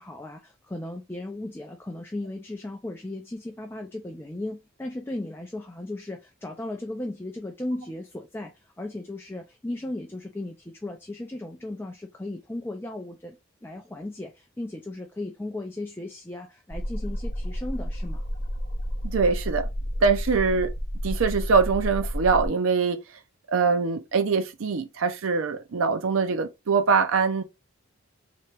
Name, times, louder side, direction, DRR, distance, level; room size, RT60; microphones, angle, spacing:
voice 1, 0.0-18.2, left 1 dB, 10° left, 0.4 m, -36 dB
sound 1, 16.7-22.5, equal, 35° left, 1.0 m, -31 dB
voice 2, 19.0-19.7 20.0-20.7 21.0-23.0 23.5-27.4, right 5 dB, 75° right, 0.5 m, -23 dB
3.0 x 2.9 x 4.5 m
head